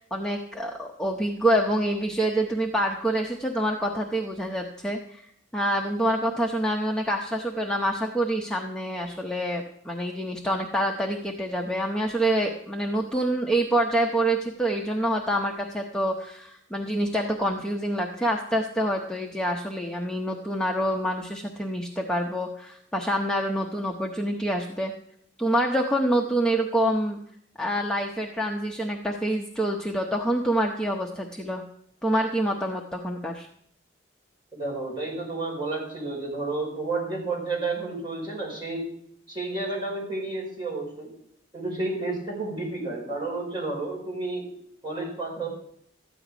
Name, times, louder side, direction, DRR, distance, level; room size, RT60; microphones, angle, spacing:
voice 1, 0.0-5.3 5.5-24.9 25.4-27.2 27.6-31.6 32.0-33.5, right 1 dB, 5° left, 0 dB, 0.8 m, -26 dB
voice 2, 34.6-38.8 39.3-41.1 41.5-44.5 44.8-45.5, right 3 dB, 25° right, -4 dB, 5.4 m, -31 dB
13.5 x 9.8 x 5.0 m, 0.69 s
head